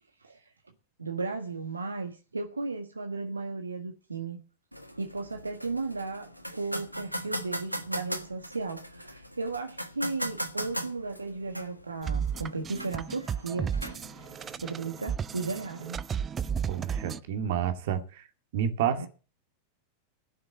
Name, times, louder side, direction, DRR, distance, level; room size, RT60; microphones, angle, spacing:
voice 1, 1.0-4.4 5.0-13.7 14.5-16.0 19.0-19.1, right 3 dB, 80° right, 1.4 m, -35 dB
sound 1, 4.7-14.7, equal, 90° left, 1.4 m, -39 dB
sound 2, 12.0-17.2, right 7 dB, 20° right, 0.6 m, -33 dB
voice 2, 16.7-18.2 18.5-19.1, right 9 dB, 55° right, 2.1 m, -29 dB
16.0 x 6.5 x 7.3 m
figure-of-eight pair, 90°, 0 cm